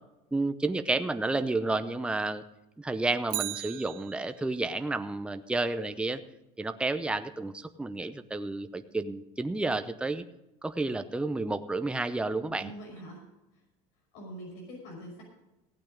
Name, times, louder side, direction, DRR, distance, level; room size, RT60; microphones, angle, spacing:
voice 1, 0.3-2.4 2.8-6.2 6.6-10.2 10.6-12.7, right 2 dB, 5° right, 9 dB, 0.7 m, -31 dB
Bicycle, 3.2-4.6 13.0-13.1, right 19 dB, 55° right, 0.4 m, -37 dB
voice 2, 12.5-13.2 14.1-15.2, right 1 dB, 75° left, -1 dB, 5.7 m, -43 dB
16.0 x 9.0 x 5.2 m, 0.96 s
supercardioid pair, 115°, 18 cm